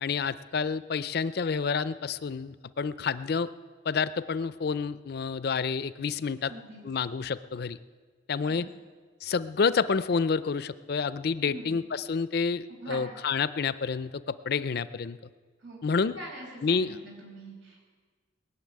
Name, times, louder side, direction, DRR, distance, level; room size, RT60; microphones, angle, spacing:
voice 1, 0.0-3.5 3.8-6.5 6.8-7.8 8.3-8.7 9.2-15.2 15.8-16.2 16.6-17.0, left 5 dB, 55° left, 15 dB, 0.4 m, -29 dB
voice 2, 6.5-6.8 8.5-8.6 11.5-11.7 12.8-13.0 15.6-15.8 16.1-17.9, right 1 dB, 85° right, -1 dB, 5.9 m, -43 dB
20.5 x 7.0 x 9.4 m, 1.5 s
head